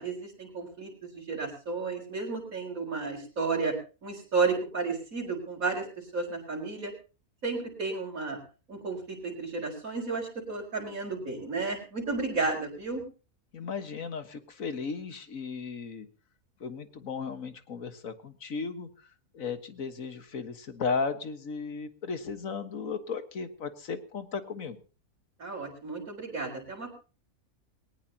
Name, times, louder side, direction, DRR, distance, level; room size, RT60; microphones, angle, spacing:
voice 1, 0.0-3.7 4.0-6.9 7.4-8.4 8.7-13.0 25.4-26.9, right 4 dB, 65° right, 0 dB, 4.5 m, -32 dB
voice 2, 13.5-16.1 16.6-18.9 19.3-24.8, left 5 dB, 65° left, 9 dB, 1.8 m, -35 dB
19.5 x 19.0 x 2.8 m, 0.35 s
omnidirectional pair, 1.5 m